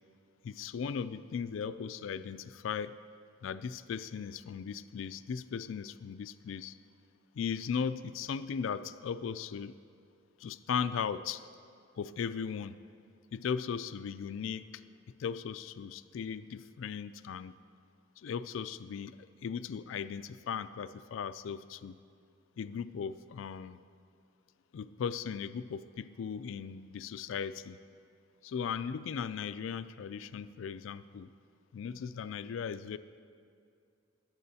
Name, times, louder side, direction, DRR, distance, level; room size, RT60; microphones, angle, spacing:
voice 1, 0.4-3.0 3.4-6.8 7.4-9.8 10.4-11.4 12.0-12.8 13.3-14.8 15.2-17.6 18.2-22.0 22.6-23.8 24.7-27.8 28.4-31.3 31.7-33.0, left 6 dB, 75° left, 13 dB, 0.3 m, -37 dB
20.0 x 7.5 x 2.8 m, 2.4 s
head